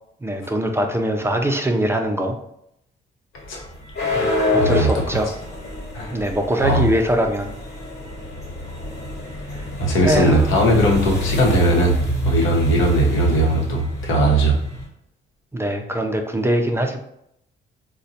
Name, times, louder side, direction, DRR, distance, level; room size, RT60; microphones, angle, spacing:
voice 1, 0.2-2.4 4.5-5.4 6.1-7.5 10.0-10.4 15.5-17.0, right 1 dB, 15° right, 4 dB, 0.4 m, -22 dB
sound 1, 3.4-14.9, equal, 55° left, 1.2 m, -26 dB
voice 2, 4.6-4.9 5.9-6.2 6.6-6.9 9.5-12.0 12.2-14.5, right 1 dB, 85° left, -1 dB, 0.9 m, -19 dB
3.9 x 2.1 x 2.7 m, 0.75 s
cardioid pair, 90°, 20 cm